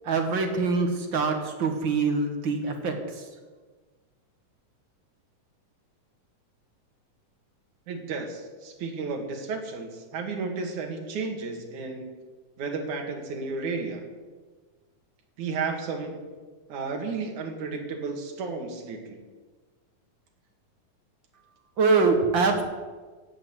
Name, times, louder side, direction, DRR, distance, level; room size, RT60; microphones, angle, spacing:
voice 1, 0.1-2.9 21.8-22.6, right 4 dB, 45° right, 4 dB, 1.8 m, -24 dB
voice 2, 7.9-12.1 12.6-14.1 15.4-16.2 16.7-19.2, right 4 dB, 65° right, 3 dB, 3.3 m, -33 dB
16.0 x 8.9 x 8.1 m, 1.4 s
omnidirectional pair, 3.8 m